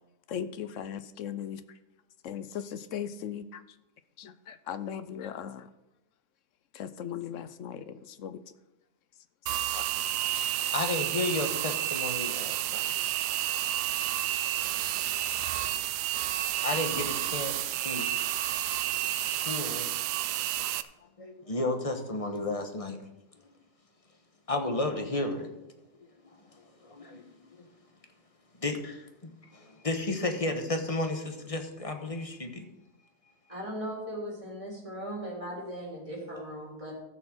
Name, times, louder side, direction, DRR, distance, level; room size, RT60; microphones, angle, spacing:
voice 1, 0.3-1.6 2.2-3.6 4.2-5.7 6.7-8.4 9.7-9.8 10.3-10.4, left 9 dB, 65° left, 13 dB, 0.8 m, -38 dB
sound 1, 9.5-20.8, right 13 dB, 85° right, 1.2 m, -30 dB
voice 2, 10.6-12.8 14.6-14.7 15.6-15.9 16.6-18.2 19.3-19.9 21.2-23.0 24.5-25.5 26.2-26.4 26.8-27.2 27.6-27.7 28.6-32.7, left 2 dB, 25° left, 5 dB, 1.0 m, -33 dB
voice 3, 33.5-36.9, equal, 20° right, -4 dB, 3.7 m, -38 dB
14.0 x 6.4 x 6.3 m, 0.96 s
omnidirectional pair, 1.7 m